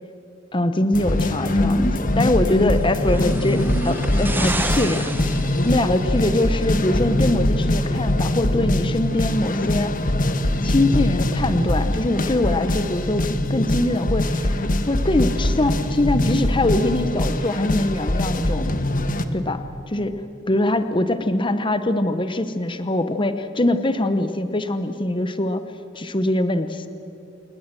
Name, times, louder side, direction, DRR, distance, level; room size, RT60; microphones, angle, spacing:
voice 1, 0.5-5.1 5.6-9.9 10.6-14.5 14.9-18.7 19.3-20.2 20.5-25.6 25.9-26.9, left 1 dB, 25° left, 10 dB, 1.0 m, -23 dB
sound 1, 0.9-19.2, left 1 dB, 45° left, 1.4 m, -22 dB
sound 2, 2.8-6.2 7.1-7.2, right 2 dB, 10° right, 1.1 m, -30 dB
28.5 x 20.0 x 7.7 m, 2.6 s
head